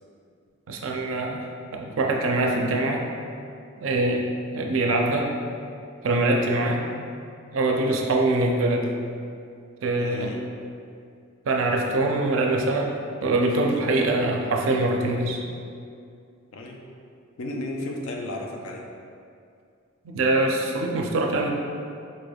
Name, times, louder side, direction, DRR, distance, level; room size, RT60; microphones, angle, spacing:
voice 1, 0.7-1.5 1.7-3.1 3.8-4.2 4.5-5.4 6.0-6.9 7.5-8.9 9.8-10.3 11.5-13.0 13.2-15.4 20.0-21.5, right 2 dB, 70° right, 1 dB, 0.4 m, -23 dB
voice 2, 10.0-10.4 16.5-16.8 17.4-18.9, left 1 dB, 75° left, 1 dB, 0.4 m, -33 dB
4.1 x 3.3 x 2.3 m, 2.4 s
head